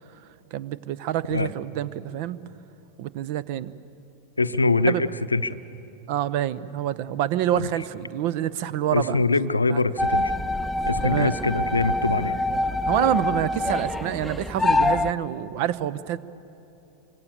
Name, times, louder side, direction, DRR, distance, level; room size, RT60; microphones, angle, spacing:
voice 1, 0.5-2.4 3.0-3.7 4.8-5.0 6.1-9.2 9.7-9.8 11.0-11.3 12.9-16.2, right 11 dB, 45° right, 18 dB, 0.7 m, -27 dB
voice 2, 4.4-5.6 7.5-7.7 8.9-10.3 10.9-12.4, left 3 dB, 80° left, 13 dB, 0.7 m, -23 dB
sound 1, 10.0-15.1, left 2 dB, 5° left, 0.6 m, -25 dB
27.0 x 25.0 x 7.0 m, 2.9 s
figure-of-eight pair, 90°, 0 cm